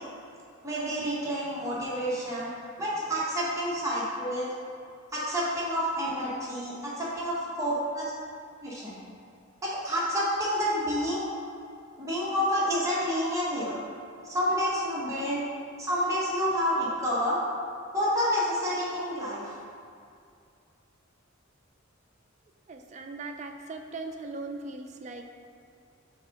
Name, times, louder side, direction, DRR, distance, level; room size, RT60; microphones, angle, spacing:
voice 1, 0.6-2.5 2.8-4.5 5.1-8.1 8.6-9.0 9.6-11.3 12.0-13.8 14.2-15.4 15.8-17.4 17.9-19.4, equal, 15° right, -7 dB, 1.0 m, -29 dB
voice 2, 22.7-25.2, right 3 dB, 35° right, 4 dB, 0.4 m, -39 dB
5.2 x 3.6 x 5.1 m, 2.4 s
head